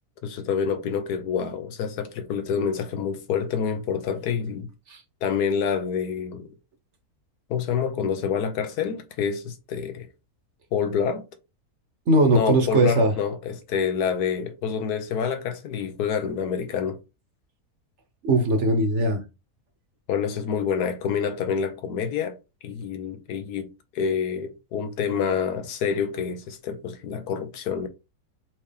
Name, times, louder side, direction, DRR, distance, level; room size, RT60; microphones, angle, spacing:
voice 1, 0.2-4.7 5.2-6.5 7.5-10.1 10.7-11.2 12.3-17.0 20.1-22.3 22.6-23.7 23.9-27.9, left 7 dB, 90° left, 1.3 m, -27 dB
voice 2, 12.1-13.1 18.2-19.2, right 1 dB, 55° right, 1.0 m, -20 dB
4.4 x 2.9 x 3.3 m
omnidirectional pair, 1.6 m